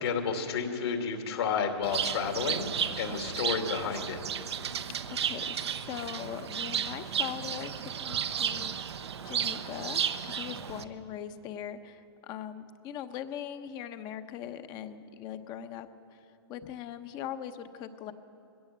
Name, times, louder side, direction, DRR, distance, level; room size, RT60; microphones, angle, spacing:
voice 1, 0.0-4.2, left 6 dB, 70° left, 4 dB, 2.8 m, -31 dB
Bird, 1.8-10.8, right 8 dB, 80° right, 1.0 m, -33 dB
voice 2, 5.1-18.1, left 10 dB, 30° left, 10 dB, 0.9 m, -41 dB
20.5 x 16.5 x 7.5 m, 2.7 s
hypercardioid pair, 140°, 14 cm